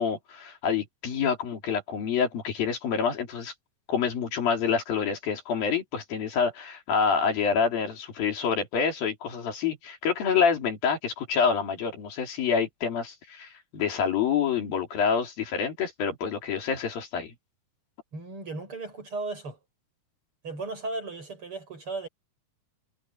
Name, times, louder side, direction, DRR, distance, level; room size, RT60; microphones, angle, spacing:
voice 1, 0.0-3.5 3.9-17.3, left 6 dB, 75° left, 5.1 m, -27 dB
voice 2, 18.1-19.6 20.4-22.1, right 3 dB, 35° right, 7.4 m, -35 dB
omnidirectional pair, 4.2 m